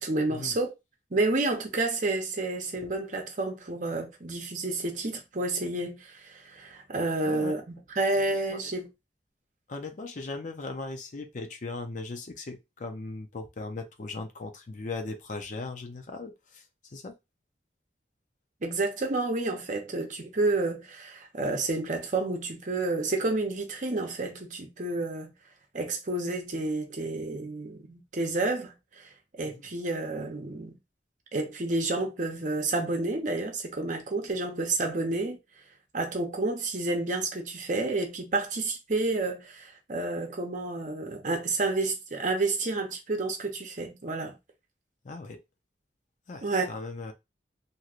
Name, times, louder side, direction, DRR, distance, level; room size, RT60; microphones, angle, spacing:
voice 1, 0.0-0.7 1.1-8.9 18.6-25.3 25.7-30.7 31.3-35.4 35.9-44.4 46.4-46.7, right 2 dB, 45° right, 0.7 m, -30 dB
voice 2, 7.3-7.6 8.3-8.6 9.7-17.2 29.4-29.7 45.0-45.4 46.3-47.1, left 3 dB, 45° left, 0.5 m, -38 dB
3.1 x 2.7 x 2.4 m
head